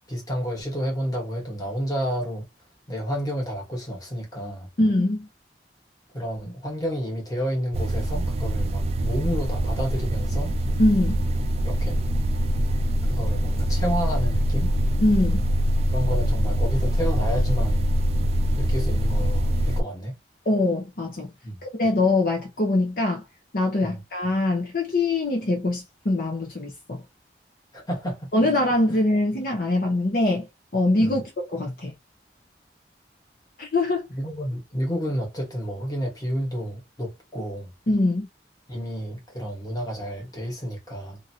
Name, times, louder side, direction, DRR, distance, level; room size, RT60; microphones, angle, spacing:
voice 1, 0.1-2.5 2.9-4.7 6.1-10.5 11.6-12.1 13.1-14.7 15.9-17.9 18.6-20.1 21.4-21.6 23.8-24.0 27.7-28.3 31.0-31.2 34.1-37.7 38.7-41.2, equal, 20° left, 1.4 m, -30 dB
voice 2, 4.8-5.3 10.8-11.2 15.0-15.5 20.5-21.3 21.8-23.2 23.5-27.0 28.3-30.5 30.7-31.9 33.6-34.1 37.9-38.3, left 2 dB, 55° left, 0.8 m, -23 dB
sound 1, 7.7-19.8, equal, 35° right, 0.4 m, -24 dB
2.8 x 2.7 x 2.8 m
head